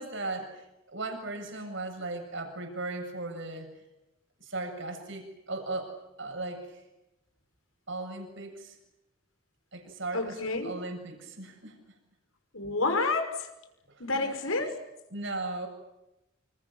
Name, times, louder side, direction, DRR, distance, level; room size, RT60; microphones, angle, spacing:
voice 1, 0.0-3.7 4.4-5.9 6.2-6.8 7.9-8.8 9.7-11.8 13.9-14.7 15.1-15.7, right 2 dB, 60° right, 4 dB, 7.4 m, -37 dB
voice 2, 10.1-10.7 12.5-13.5 14.0-14.7, left 3 dB, 85° left, 7 dB, 5.8 m, -29 dB
28.5 x 27.0 x 7.4 m, 0.93 s
head